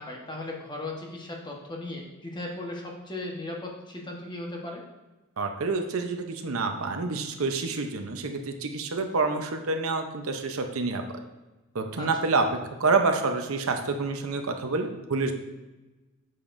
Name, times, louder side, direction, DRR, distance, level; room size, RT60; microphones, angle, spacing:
voice 1, 0.0-4.8 12.0-12.1, left 2 dB, 20° left, -1 dB, 1.2 m, -37 dB
voice 2, 5.4-11.2 11.7-12.5 12.8-15.3, right 3 dB, 70° right, 5 dB, 0.7 m, -28 dB
8.7 x 6.8 x 2.6 m, 1.1 s
head